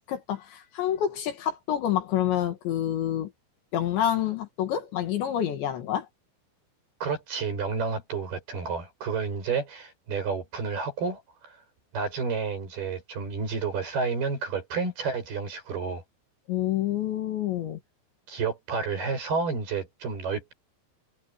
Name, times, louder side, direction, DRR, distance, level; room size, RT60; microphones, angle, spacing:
voice 1, 0.0-3.3 3.7-6.1 16.5-17.8, left 11 dB, 70° left, 4.1 m, -28 dB
voice 2, 7.0-11.6 11.9-16.0 18.3-20.5, right 5 dB, 55° right, 8.7 m, -30 dB
omnidirectional pair, 5.5 m